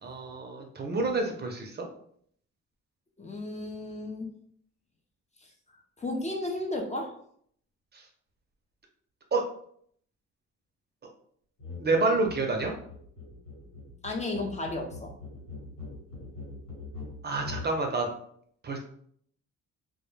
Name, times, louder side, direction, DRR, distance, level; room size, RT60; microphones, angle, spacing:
voice 1, 0.0-1.9 7.9-8.0 9.3-9.4 11.8-12.7 17.2-18.1 18.6-18.8, right 3 dB, 35° right, 2 dB, 0.5 m, -28 dB
voice 2, 3.2-4.3 5.4-5.5 6.0-7.1 14.0-15.1, left 2 dB, 25° left, 1 dB, 0.5 m, -33 dB
sound 1, 11.6-11.8 12.1-17.7, left 3 dB, 85° left, 1.2 m, -43 dB
2.2 x 2.1 x 3.0 m, 0.63 s
cardioid pair, 90°, 30 cm